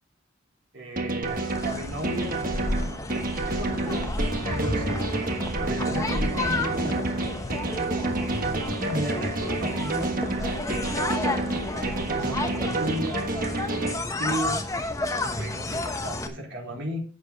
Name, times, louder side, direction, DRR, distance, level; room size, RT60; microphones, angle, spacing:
voice 1, 0.7-2.3 3.4-5.0 5.6-7.3 8.9-11.0 11.7-13.2 13.8-14.6 15.2-17.0, right 1 dB, 65° right, -1 dB, 3.9 m, -35 dB
sound 1, 1.0-13.9, right 2 dB, 45° right, 1.4 m, -29 dB
sound 2, 1.2-16.3, left 2 dB, 15° left, 1.0 m, -31 dB
11.0 x 8.2 x 3.9 m, 0.34 s
head